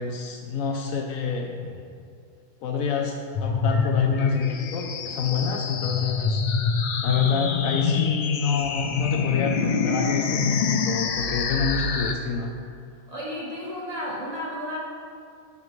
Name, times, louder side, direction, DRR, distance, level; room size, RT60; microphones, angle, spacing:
voice 1, 0.0-1.5 2.6-6.4 7.0-12.5, left 5 dB, 85° left, 2 dB, 1.1 m, -27 dB
sound 1, 3.3-12.1, left 5 dB, 70° left, 0.4 m, -26 dB
voice 2, 13.1-14.8, left 1 dB, 30° right, -5 dB, 1.3 m, -32 dB
13.0 x 5.3 x 3.2 m, 2.2 s
omnidirectional pair, 1.4 m